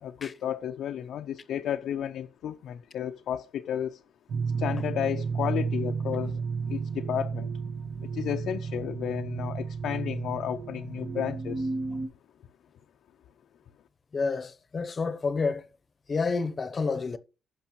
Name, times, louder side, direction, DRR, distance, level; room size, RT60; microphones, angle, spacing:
voice 1, 0.0-4.0 4.6-6.4 6.7-7.5 8.0-11.7, left 10 dB, 75° left, 0.5 m, -32 dB
sound 1, 4.3-12.1, right 5 dB, 55° right, 1.2 m, -32 dB
voice 2, 14.1-15.7 16.1-17.2, left 4 dB, 35° left, 0.7 m, -29 dB
14.5 x 5.3 x 3.0 m
cardioid pair, 90°, 0 cm